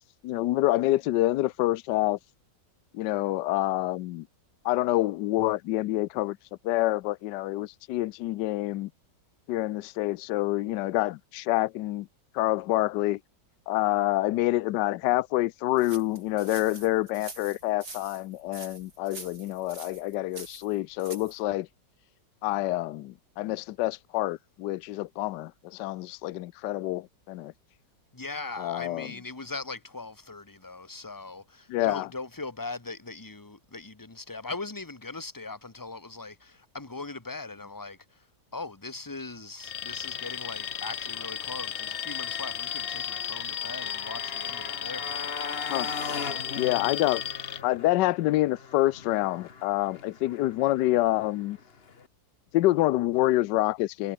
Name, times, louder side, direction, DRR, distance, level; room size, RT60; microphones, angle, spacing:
voice 1, 0.2-2.2 2.9-4.3 4.6-6.4 6.6-8.9 9.5-12.1 12.3-13.2 13.7-21.7 22.4-27.5 28.6-29.1 31.7-32.1 45.7-45.9 46.6-47.2 47.6-51.6 52.5-54.1, left 16 dB, 75° left, 1.2 m, -27 dB
sound 1, 15.8-21.4, right 3 dB, 70° right, 6.0 m, -45 dB
voice 2, 28.1-38.3 38.5-45.5, left 3 dB, 10° left, 1.3 m, -40 dB
Alarm, 39.6-47.6, left 9 dB, 55° left, 0.8 m, -35 dB
Motorcycle, 40.0-52.1, left 5 dB, 35° left, 1.5 m, -41 dB
omnidirectional pair, 1.9 m